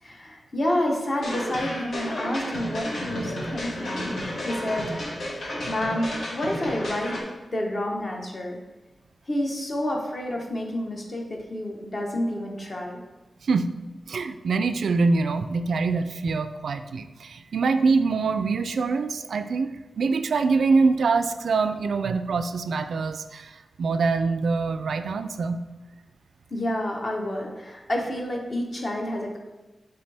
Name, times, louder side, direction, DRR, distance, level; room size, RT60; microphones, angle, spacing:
voice 1, 0.0-4.2 4.4-7.2 7.5-8.6 9.3-13.0 26.5-29.4, left 1 dB, 35° left, 0 dB, 1.0 m, -29 dB
sound 1, 1.2-7.2, left 1 dB, 85° left, 1.7 m, -32 dB
voice 2, 14.1-23.5 23.8-25.6, right 4 dB, 80° right, 9 dB, 0.3 m, -24 dB
9.7 x 3.5 x 3.4 m, 1.1 s
wide cardioid pair, 145°, 0 cm